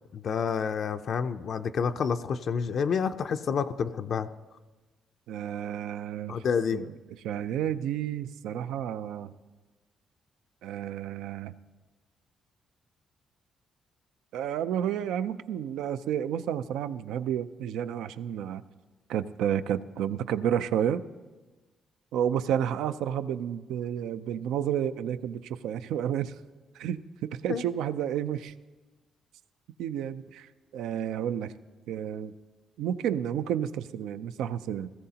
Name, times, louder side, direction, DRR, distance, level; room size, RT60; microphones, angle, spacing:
voice 1, 0.1-4.3 6.3-6.8 27.5-27.6, left 6 dB, 60° left, 6 dB, 0.4 m, -29 dB
voice 2, 5.3-6.4 6.7-6.9 7.2-9.3 10.6-11.5 14.3-18.6 19.1-21.0 22.1-26.3 26.7-28.5 29.8-31.5 31.9-32.3 32.8-34.9, right 9 dB, 85° right, 13 dB, 0.4 m, -31 dB
17.0 x 14.5 x 2.8 m, 1.2 s
cardioid pair, 90°, 0 cm